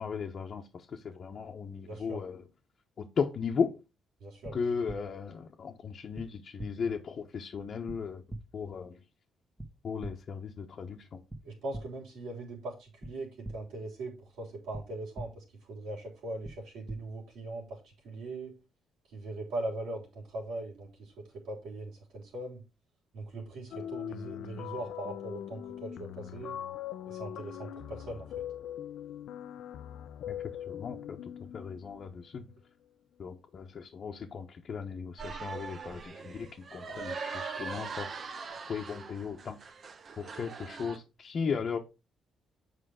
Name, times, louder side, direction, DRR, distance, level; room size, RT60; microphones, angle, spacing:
voice 1, 0.0-2.4 3.0-3.7 4.5-8.2 8.5-9.0 9.8-11.2 30.3-30.4 30.7-32.5 33.2-38.1 38.7-39.6 40.2-41.8, left 6 dB, 50° left, 1.1 m, -36 dB
voice 2, 1.9-2.2 4.2-4.6 11.4-18.5 19.1-22.6 23.1-26.6 27.1-28.4, right 2 dB, 85° right, 3.5 m, -40 dB
sound 1, 4.4-4.5 4.9-5.0 6.1-6.2 6.6-6.7 7.9-8.0 8.3-8.4 9.6-9.7 10.0-10.1 11.3-11.4 11.7-11.8 13.0-13.1 13.4-13.5 14.7-14.8 15.1-15.2 16.4-16.5 16.9-17.0, right 2 dB, 10° right, 1.5 m, -39 dB
sound 2, 23.7-32.2, left 11 dB, 75° left, 0.6 m, -41 dB
sound 3, 35.2-41.0, right 5 dB, 45° right, 1.0 m, -41 dB
7.9 x 5.0 x 4.8 m
cardioid pair, 90°, 0 cm